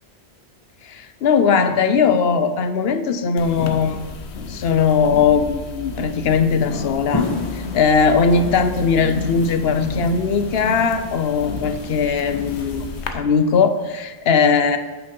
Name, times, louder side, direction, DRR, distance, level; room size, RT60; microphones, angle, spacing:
voice 1, 0.8-4.0 4.5-12.9 13.1-14.8, left 5 dB, 70° left, 10 dB, 0.9 m, -19 dB
sound 1, 3.4-13.1, left 4 dB, 90° left, 1.1 m, -32 dB
sound 2, 7.1-13.0, left 3 dB, 25° left, 1.4 m, -32 dB
8.9 x 6.1 x 5.3 m, 1.3 s
omnidirectional pair, 1.1 m